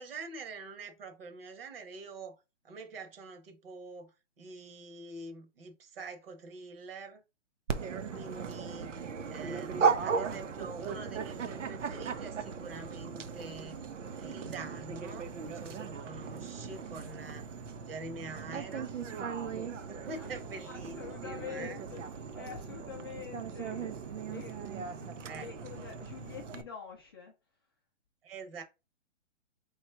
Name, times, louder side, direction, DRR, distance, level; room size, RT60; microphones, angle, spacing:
voice 1, 0.0-2.4 2.6-4.1 4.4-7.2 8.1-9.0 9.3-13.8 14.2-17.5 17.9-19.0 19.9-21.8 25.2-25.5 28.2-28.6, right 3 dB, 50° right, 1.4 m, -45 dB
Dog, 7.7-26.6, right 5 dB, 75° right, 0.9 m, -37 dB
sound 1, 14.4-26.6, right 5 dB, 20° right, 0.9 m, -56 dB
voice 2, 20.1-27.3, left 7 dB, 20° left, 0.5 m, -47 dB
3.2 x 2.9 x 4.5 m
hypercardioid pair, 160°, 37 cm